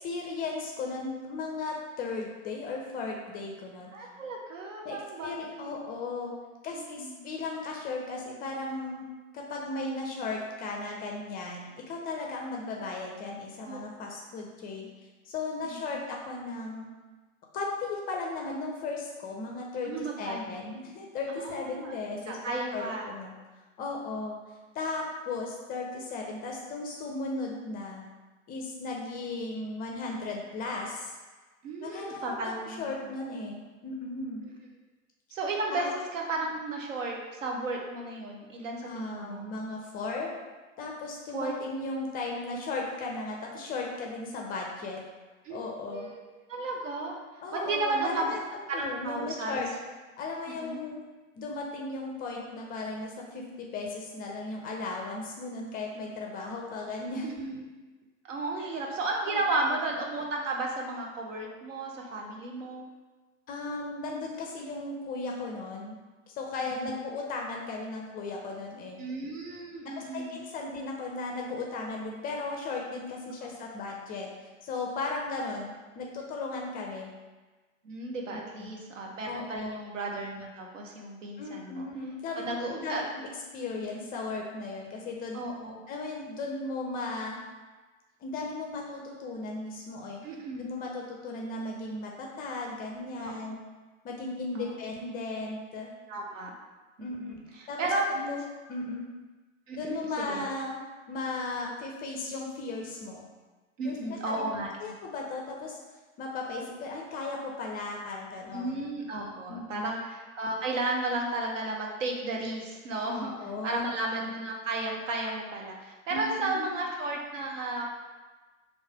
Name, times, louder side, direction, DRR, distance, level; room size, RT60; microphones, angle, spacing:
voice 1, 0.0-3.9 4.8-5.0 5.2-6.4 6.6-9.0 9.3-14.9 15.2-16.9 17.5-23.3 23.8-24.4 24.7-28.0 28.5-31.2 31.8-34.4 35.7-35.9 38.8-40.3 40.8-45.0 45.5-46.1 47.4-48.4 48.7-49.7 50.2-51.0 51.4-57.3 58.6-58.7 59.3-59.8 63.5-65.9 66.3-69.0 70.1-74.3 74.6-77.1 78.3-78.7 79.2-79.7 81.4-83.0 83.5-85.4 85.9-87.4 88.2-90.2 90.6-93.6 94.0-95.9 97.0-97.4 97.7-98.4 98.7-99.0 99.7-100.7 101.1-103.3 103.8-104.5 104.8-105.8 106.2-108.7 109.5-109.9 113.1-113.8 116.1-116.8, left 3 dB, 25° left, 0 dB, 0.4 m, -36 dB
voice 2, 3.9-5.7 6.7-7.2 13.6-13.8 15.9-16.0 19.8-20.6 21.4-22.0 22.3-23.1 31.6-32.8 35.3-35.9 36.1-39.5 41.3-41.5 45.4-45.6 45.9-46.2 46.5-47.2 47.5-48.4 48.7-49.6 50.6-50.8 57.2-57.6 58.2-62.8 66.8-66.9 69.0-70.3 73.4-73.5 77.8-81.8 82.4-83.0 85.3-85.7 90.2-90.7 93.2-93.6 94.5-94.7 96.1-96.5 97.0-98.1 99.7-100.4 103.8-104.9 108.5-113.3 113.6-117.9, right 2 dB, 70° right, 0 dB, 0.9 m, -34 dB
3.1 x 2.6 x 4.5 m, 1.3 s
figure-of-eight pair, 90°, 40 cm